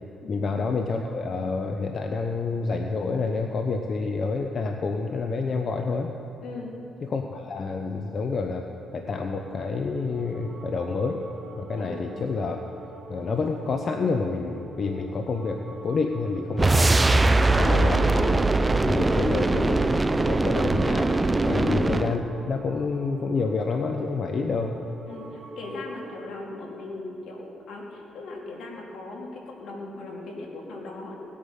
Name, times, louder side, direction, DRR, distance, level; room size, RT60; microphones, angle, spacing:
voice 1, 0.3-6.1 7.0-8.6 8.9-11.2 11.6-12.6 13.1-16.9 17.6-18.4 18.9-19.9 20.2-21.1 21.4-24.7, left 4 dB, 50° left, 4 dB, 0.8 m, -28 dB
voice 2, 6.4-6.7 11.8-12.2 17.5-18.0 21.5-21.7 25.1-31.2, left 3 dB, 75° left, -1 dB, 2.7 m, -38 dB
sound 1, 8.7-26.3, right 2 dB, 50° right, 2.1 m, -43 dB
sound 2, 16.6-22.2, right 2 dB, 20° right, 0.5 m, -21 dB
18.5 x 8.6 x 5.6 m, 2.9 s
cardioid pair, 90°, 0 cm